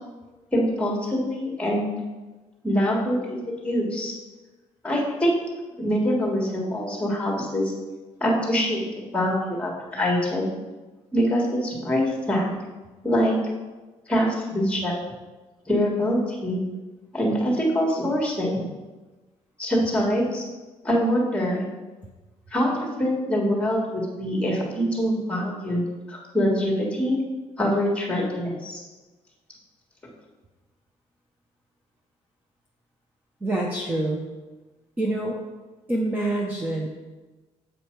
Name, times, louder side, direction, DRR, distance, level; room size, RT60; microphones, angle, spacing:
voice 1, 0.5-2.0 2.6-4.1 4.8-5.3 5.8-7.7 8.2-10.5 11.1-12.5 13.0-13.3 14.1-14.9 15.7-16.6 17.1-18.7 19.6-20.4 20.8-21.7 22.5-25.8 26.1-27.2 27.6-28.8, equal, 10° left, -2 dB, 1.6 m, -24 dB
voice 2, 33.4-34.2 35.0-35.4 35.9-36.9, right 1 dB, 15° right, -2 dB, 0.7 m, -26 dB
7.5 x 5.0 x 4.5 m, 1.2 s
cardioid pair, 160°, 11 cm